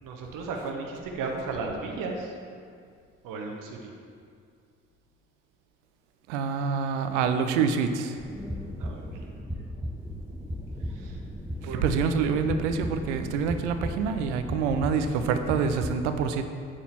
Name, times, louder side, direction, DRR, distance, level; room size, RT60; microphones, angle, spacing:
voice 1, 0.0-2.3 3.2-3.9 8.8-9.3 10.9-11.2 11.6-11.8, right 3 dB, 65° right, 1 dB, 1.0 m, -35 dB
voice 2, 6.3-8.2 11.8-16.4, right 6 dB, 80° right, 8 dB, 0.6 m, -26 dB
sound 1, 8.2-15.9, equal, 5° right, 0.9 m, -36 dB
8.7 x 4.2 x 7.1 m, 2.2 s
hypercardioid pair, 45°, 35 cm